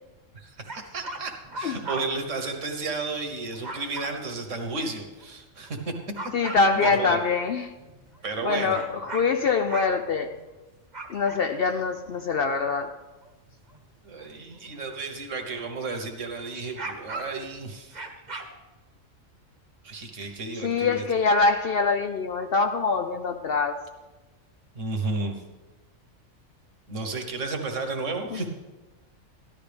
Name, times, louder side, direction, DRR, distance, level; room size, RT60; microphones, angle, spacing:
voice 1, 0.3-5.8 6.7-7.2 8.2-8.8 14.0-18.1 19.8-21.0 24.7-25.4 26.9-28.5, right 3 dB, 65° right, 4 dB, 1.6 m, -33 dB
sound 1, 0.7-2.0 3.1-4.1 5.2-5.3 5.7-5.8 6.2-7.2 7.8-8.5 8.7-10.5 10.9-11.6 12.1-12.3 13.2-13.8 14.2-14.3 16.6-17.5 17.9-18.4, right 2 dB, 35° right, 1.2 m, -37 dB
voice 2, 6.3-7.8 8.4-10.4 11.1-13.0 20.5-23.9 28.3-28.4, left 4 dB, 60° left, 7 dB, 0.6 m, -24 dB
14.0 x 12.0 x 3.4 m, 1.1 s
omnidirectional pair, 1.4 m